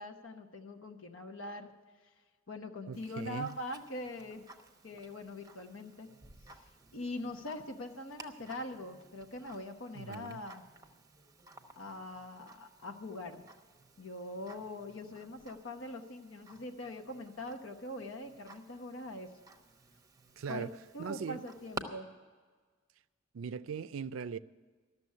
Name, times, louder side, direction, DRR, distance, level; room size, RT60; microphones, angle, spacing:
voice 1, 0.0-1.7 2.5-4.4 4.8-6.1 6.5-6.6 6.9-10.7 11.8-13.4 14.0-19.3 20.5-20.7 20.9-22.1, left 1 dB, 70° left, 1.0 m, -43 dB
Tick-tock, 2.9-21.8, right 2 dB, 20° right, 0.8 m, -54 dB
voice 2, 2.9-3.6 9.9-10.4 20.4-20.7 21.0-21.4 23.3-24.4, right 6 dB, 75° right, 0.4 m, -40 dB
13.0 x 6.9 x 9.4 m
head